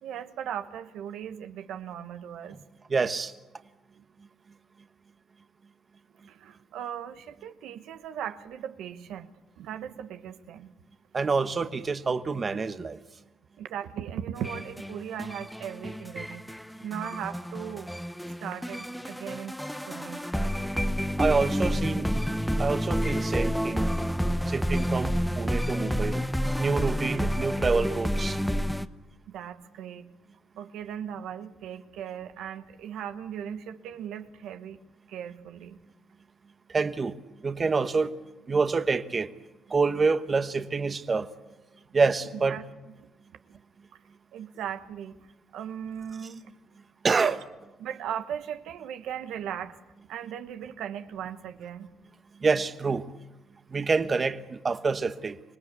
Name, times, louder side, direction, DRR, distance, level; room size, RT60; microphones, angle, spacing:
voice 1, 0.0-2.6 6.3-10.7 13.6-16.5 16.8-17.9 18.4-20.5 29.3-30.1 30.6-34.8 35.1-35.8 42.3-42.6 43.5-43.6 44.3-45.2 45.5-46.5 47.1-47.3 47.8-49.8 50.1-51.9, right 9 dB, 85° right, 1.1 m, -38 dB
voice 2, 2.9-3.3 11.1-13.0 21.2-22.1 22.6-23.9 24.5-26.2 26.6-28.4 36.7-37.1 37.4-38.1 38.5-39.3 39.7-41.3 41.9-42.6 47.0-47.3 52.4-53.1 53.7-55.4, right 4 dB, 35° right, 1.2 m, -27 dB
sound 1, 14.4-28.9, equal, ahead, 0.9 m, -29 dB
25.5 x 19.5 x 8.3 m
cardioid pair, 90°, 0 cm